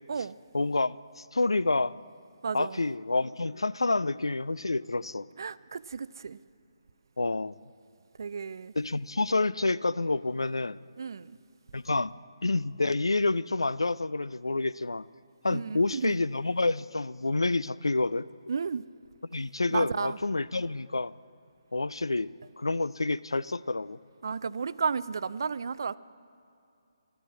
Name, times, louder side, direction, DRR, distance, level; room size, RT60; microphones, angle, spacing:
voice 1, 0.5-2.0 2.5-5.3 7.2-7.6 8.8-10.8 11.7-12.1 12.4-15.0 15.4-18.3 19.3-21.1 21.7-24.0, left 3 dB, 80° left, 0.3 m, -28 dB
voice 2, 2.4-2.8 5.4-6.4 8.2-8.7 11.0-11.4 15.5-16.1 18.5-18.9 19.7-20.2 24.2-26.0, right 5 dB, 55° right, 0.4 m, -33 dB
12.5 x 11.5 x 7.5 m
figure-of-eight pair, 145°, 3 cm